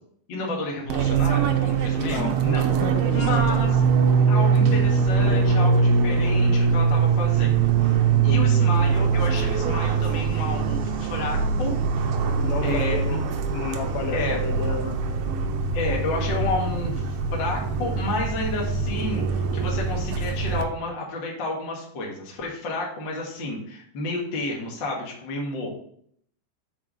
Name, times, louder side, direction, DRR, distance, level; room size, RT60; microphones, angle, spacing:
voice 1, 0.3-2.7 3.1-3.7 4.3-12.1 12.6-13.2 14.1-14.4 15.7-17.0 17.3-25.7, left 2 dB, 55° left, -1 dB, 1.2 m, -31 dB
Fixed-wing aircraft airplane, 0.9-20.6, right 5 dB, 80° right, 2.3 m, -22 dB
voice 2, 2.0-2.4 2.7-3.6 8.1-8.7 12.4-15.2, left 6 dB, 75° left, 4 dB, 2.9 m, -32 dB
7.2 x 4.9 x 6.2 m, 0.64 s
omnidirectional pair, 5.3 m